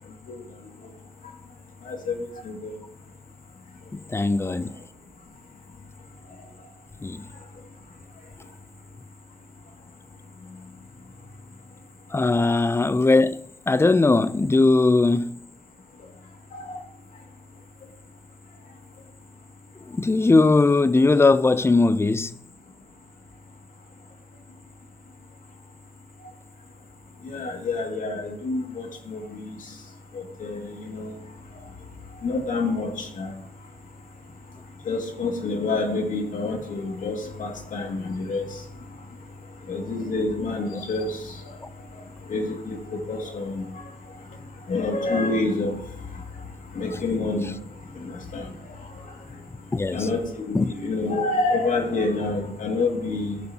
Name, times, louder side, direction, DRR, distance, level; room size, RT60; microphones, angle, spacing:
voice 1, 4.1-4.7 7.0-7.2 12.1-15.3 19.9-22.3 49.7-50.1 50.5-50.7, left 3 dB, 15° left, 0.4 m, -19 dB
voice 2, 27.3-29.4 30.4-30.6 30.9-31.1 32.2-32.9 33.2-33.3 34.9-38.4 39.7-41.1 42.3-42.8 43.1-43.6 44.7-45.7 46.8-47.5 48.3-48.4 49.9-50.2 50.5-53.4, left 3 dB, 60° left, 2.3 m, -27 dB
16.0 x 5.9 x 2.9 m
cardioid pair, 75°, 15 cm